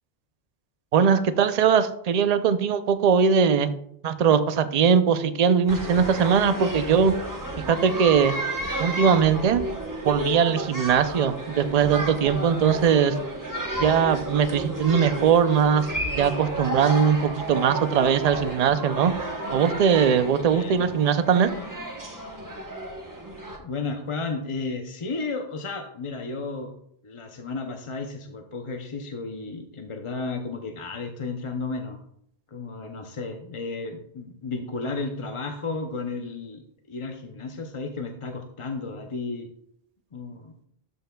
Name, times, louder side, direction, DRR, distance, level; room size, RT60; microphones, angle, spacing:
voice 1, 0.9-3.7 4.0-7.1 7.7-8.3 8.8-9.6 10.0-13.2 13.8-15.9 16.1-19.1 19.5-21.5, right 7 dB, 50° right, 11 dB, 0.5 m, -20 dB
sound 1, 5.7-23.6, right 1 dB, 20° right, 0.9 m, -32 dB
voice 2, 20.5-20.9 22.2-22.3 23.6-26.7 27.0-32.0 32.5-36.6 36.9-39.5 40.1-40.6, left 3 dB, 35° left, 4 dB, 0.6 m, -33 dB
12.5 x 5.6 x 2.3 m, 0.70 s
omnidirectional pair, 1.1 m